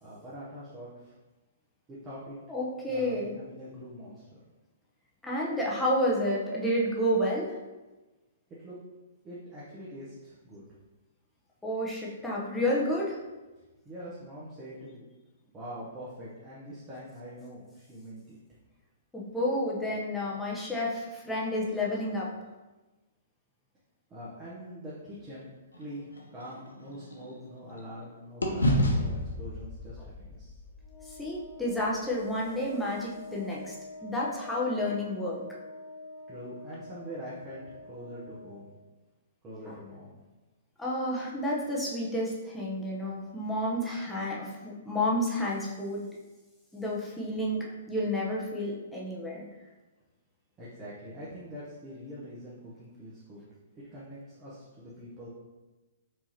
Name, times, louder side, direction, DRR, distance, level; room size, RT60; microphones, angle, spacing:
voice 1, 0.0-1.1 1.9-2.4 2.9-4.4 8.6-8.8 9.2-10.7 13.8-15.1 15.5-18.4 24.1-25.5 25.8-30.6 36.3-38.7 39.4-40.2 50.6-53.4 53.7-55.3, equal, 20° right, -8 dB, 0.9 m, -44 dB
voice 2, 2.5-3.3 5.2-7.6 11.6-13.2 19.1-22.3 31.2-33.8 34.0-35.4 39.7-39.8 40.8-46.0 46.7-49.4, left 1 dB, 5° left, -5 dB, 0.8 m, -30 dB
sound 1, 25.7-28.0 28.4-32.6, left 1 dB, 85° left, 0.6 m, -32 dB
Wind instrument woodwind instrument, 30.8-38.7, left 2 dB, 45° left, 0.8 m, -46 dB
4.8 x 2.8 x 2.8 m, 1.1 s
figure-of-eight pair, 120°, 0 cm